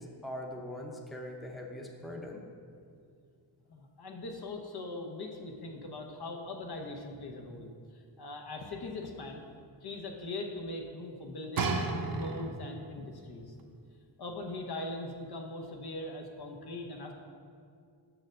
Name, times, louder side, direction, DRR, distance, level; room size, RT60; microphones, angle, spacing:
voice 1, 0.0-2.4, left 1 dB, ahead, 1 dB, 0.7 m, -42 dB
voice 2, 3.7-9.4 9.8-11.8 12.1-13.5 14.2-17.1, left 2 dB, 60° left, 2 dB, 0.9 m, -41 dB
sound 1, 11.6-12.8 13.6-13.7, right 3 dB, 55° right, 0.7 m, -32 dB
6.4 x 4.8 x 6.3 m, 2.3 s
wide cardioid pair, 90°, 43 cm